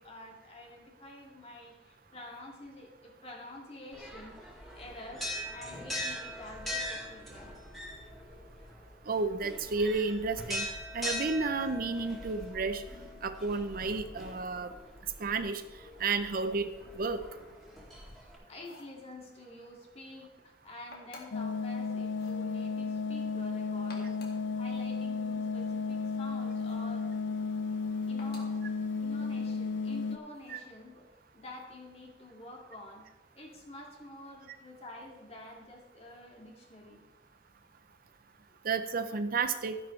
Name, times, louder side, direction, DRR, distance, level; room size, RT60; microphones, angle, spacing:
voice 1, 0.0-4.4 4.7-7.5 18.5-24.2 24.6-27.1 28.1-28.5 29.0-33.1 33.3-37.0 38.5-38.6, left 1 dB, 35° left, -1 dB, 2.2 m, -48 dB
sound 1, 3.9-18.4, left 1 dB, ahead, 2.6 m, -42 dB
voice 2, 9.1-10.7 10.9-12.8 13.2-14.7 15.2-15.6 16.0-16.7 17.0-17.2 30.5-30.6 38.6-39.8, right 4 dB, 50° right, 10 dB, 0.6 m, -31 dB
sound 2, 18.5-19.0 20.9-21.5 22.1-22.4 23.7-24.5 26.6-26.9 28.2-28.6 30.3-30.7, left 2 dB, 55° left, 2.0 m, -52 dB
sound 3, 21.3-30.2, left 4 dB, 80° left, 0.5 m, -33 dB
12.5 x 10.5 x 3.2 m, 1.1 s
head